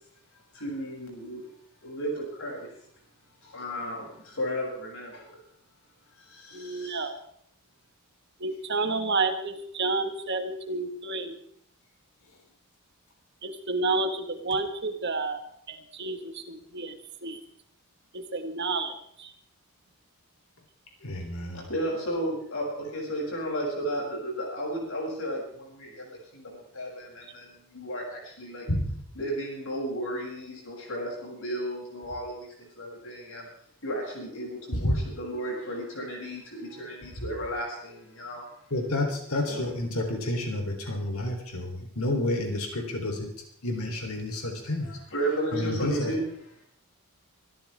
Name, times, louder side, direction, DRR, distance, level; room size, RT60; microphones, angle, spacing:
voice 1, 0.5-1.5 1.8-2.7 3.4-5.4 6.2-7.1 21.5-28.7 29.1-33.5 33.8-38.4 39.5-39.7 44.8-46.3, right 1 dB, 70° left, -1 dB, 7.6 m, -34 dB
voice 2, 6.5-7.1 8.4-11.4 13.4-15.4 15.7-17.0 17.2-17.4 18.1-19.3, right 3 dB, 55° right, 7 dB, 1.8 m, -30 dB
voice 3, 21.0-21.6 28.7-28.9 34.8-35.0 38.7-43.3 43.6-44.9 45.5-46.1, left 1 dB, 90° left, 2 dB, 3.8 m, -29 dB
25.0 x 13.5 x 3.6 m, 0.66 s
head